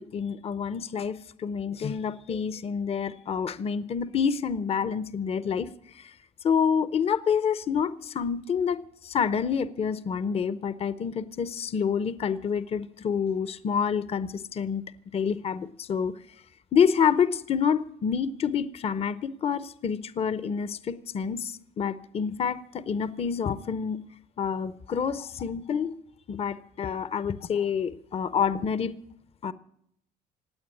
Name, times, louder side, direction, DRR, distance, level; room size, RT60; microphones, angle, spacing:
voice 1, 0.0-6.2 6.4-14.8 15.1-16.1 16.7-24.0 24.4-25.9 26.3-28.9 29.4-29.5, left 7 dB, 35° left, 0.7 m, -28 dB
17.0 x 8.9 x 9.6 m
cardioid pair, 110°, 17 cm